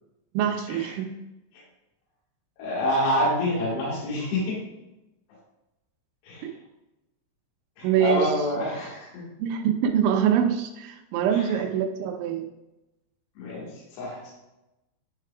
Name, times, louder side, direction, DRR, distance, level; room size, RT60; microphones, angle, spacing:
voice 1, 0.3-1.1 7.8-8.3 9.4-12.5, right 8 dB, 90° right, 5 dB, 3.1 m, -24 dB
voice 2, 2.6-4.6 6.2-6.5 7.8-9.2 11.3-11.6 13.4-13.7 13.9-14.3, left 1 dB, 65° left, -5 dB, 3.5 m, -27 dB
9.7 x 4.7 x 2.3 m, 0.96 s
omnidirectional pair, 5.3 m